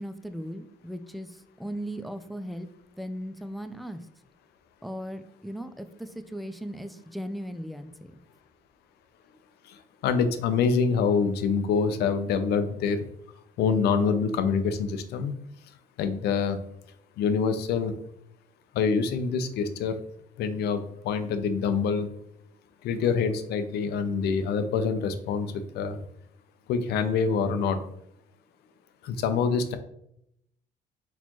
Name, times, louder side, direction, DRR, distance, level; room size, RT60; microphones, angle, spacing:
voice 1, 0.0-2.7 3.0-4.0 4.8-8.1, equal, ahead, 9 dB, 0.3 m, -37 dB
voice 2, 10.0-13.0 13.6-15.3 16.0-16.6 17.2-17.9 18.7-19.9 20.4-22.1 22.8-26.0 26.7-27.8 29.0-29.8, left 5 dB, 75° left, 10 dB, 0.6 m, -25 dB
4.3 x 4.1 x 3.0 m, 0.74 s
cardioid pair, 110°, 17 cm